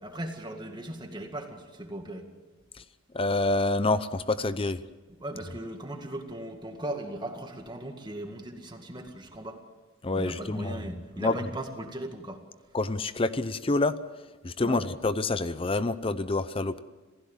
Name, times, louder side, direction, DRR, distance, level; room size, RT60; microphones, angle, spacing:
voice 1, 0.0-2.3 5.2-9.6 10.1-12.4 14.6-14.9, right 1 dB, 20° right, 5 dB, 2.1 m, -38 dB
voice 2, 3.1-4.8 10.0-10.8 11.2-11.3 12.7-14.0 14.4-16.8, left 2 dB, 25° left, 14 dB, 0.6 m, -27 dB
27.0 x 16.0 x 7.3 m, 1.2 s
head